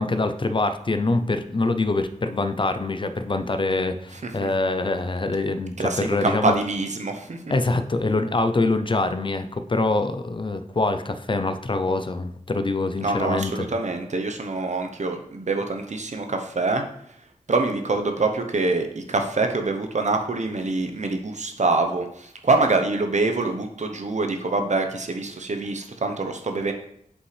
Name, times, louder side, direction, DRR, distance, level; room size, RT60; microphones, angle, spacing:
voice 1, 0.0-6.5 7.5-13.7, left 2 dB, 40° left, 9 dB, 0.5 m, -24 dB
voice 2, 4.1-4.5 5.8-7.4 13.0-16.8 17.5-26.7, right 3 dB, 60° right, 5 dB, 0.8 m, -25 dB
8.1 x 5.3 x 3.3 m, 0.70 s
wide cardioid pair, 90°, 13 cm